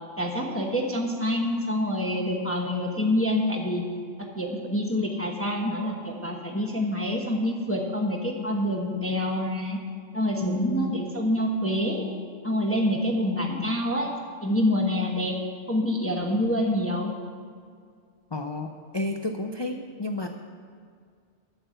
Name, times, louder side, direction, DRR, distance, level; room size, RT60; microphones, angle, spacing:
voice 1, 0.2-3.8 4.3-9.8 10.1-12.1 12.4-14.1 14.4-15.4 15.7-17.1, left 1 dB, 10° left, 0 dB, 1.0 m, -26 dB
voice 2, 10.4-11.0 18.3-20.3, left 1 dB, 35° left, 4 dB, 0.4 m, -31 dB
9.3 x 6.9 x 7.8 m, 2.1 s
omnidirectional pair, 1.2 m